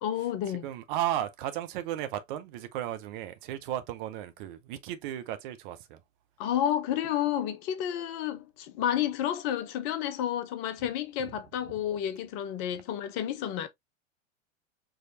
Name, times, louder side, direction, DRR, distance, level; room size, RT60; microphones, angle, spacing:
voice 1, 0.0-0.7 6.4-13.7, left 10 dB, 35° left, 0.7 m, -30 dB
voice 2, 0.6-6.0 10.8-10.9, right 12 dB, 40° right, 0.7 m, -34 dB
4.8 x 3.1 x 2.6 m
figure-of-eight pair, 90°, 39 cm